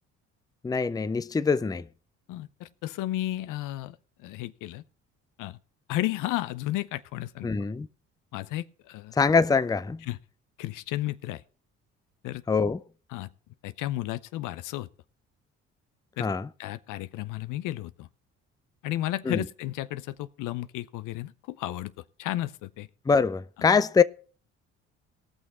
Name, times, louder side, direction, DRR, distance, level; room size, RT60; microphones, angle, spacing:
voice 1, 0.6-1.8 7.4-7.9 9.1-10.0 12.5-12.8 16.2-16.5 19.3-19.4 23.1-24.0, left 5 dB, 10° left, 0.5 m, -23 dB
voice 2, 2.3-4.8 5.4-5.6 5.9-7.5 8.3-9.1 10.1-10.2 10.6-11.4 12.2-12.4 13.1-13.3 13.6-14.9 16.2-16.3 16.6-18.1 18.8-21.9 22.2-22.9 23.6-23.7, left 15 dB, 70° left, 0.7 m, -33 dB
18.5 x 6.2 x 4.3 m
hypercardioid pair, 55°, 33 cm